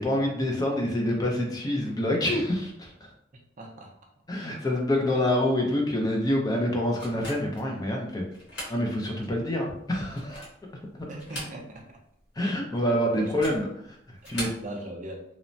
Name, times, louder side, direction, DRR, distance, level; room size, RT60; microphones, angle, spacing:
voice 1, 0.0-3.1 4.3-8.2 8.7-10.4 10.9-11.1 12.4-13.6 14.1-14.5, left 1 dB, 20° left, 0 dB, 0.4 m, -27 dB
voice 2, 3.6-4.0 11.1-12.0 13.2-13.5 14.2-15.2, right 1 dB, 40° right, 1 dB, 0.4 m, -40 dB
sound 1, 7.0-7.7 8.3-8.8 9.2-9.3 10.0-10.7 11.1-11.9 12.2-12.3 13.2-13.7 14.2-14.6, equal, 75° left, 1.3 m, -39 dB
3.0 x 2.0 x 2.6 m, 0.71 s
head